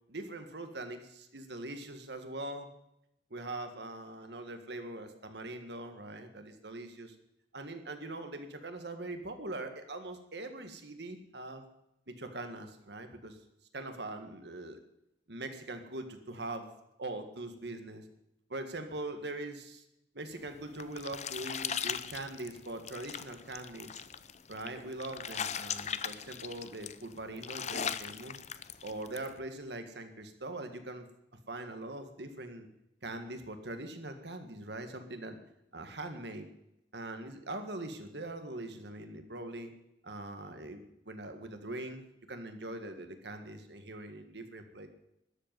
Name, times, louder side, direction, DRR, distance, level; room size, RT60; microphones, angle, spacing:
voice 1, 0.1-2.7 3.3-7.2 7.5-11.6 12.1-13.4 13.7-14.8 15.3-16.7 17.0-18.0 18.5-19.8 20.1-24.1 24.5-28.4 28.8-31.1 31.5-32.7 33.0-35.4 35.7-36.5 36.9-39.7 40.0-44.9, right 2 dB, 65° right, 7 dB, 1.8 m, -42 dB
sound 1, 20.4-29.3, left 8 dB, 40° left, 0.6 m, -39 dB
13.0 x 7.9 x 9.3 m, 0.83 s
head